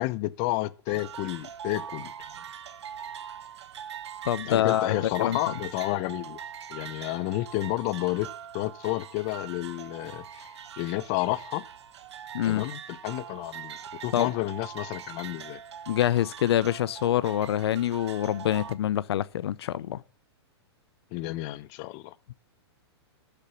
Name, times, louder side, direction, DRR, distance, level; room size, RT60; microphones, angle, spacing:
voice 1, 0.0-2.1 4.4-6.4 6.7-8.3 8.5-11.6 12.4-13.8 14.0-15.6 21.1-22.1, left 18 dB, 35° left, 0.7 m, -31 dB
sound 1, 0.9-18.7, right 8 dB, 85° right, 1.3 m, -42 dB
voice 2, 4.2-5.4 12.3-12.6 14.1-14.3 15.9-20.0, left 12 dB, 70° left, 0.6 m, -26 dB
13.5 x 7.0 x 7.1 m
hypercardioid pair, 155°, 14 cm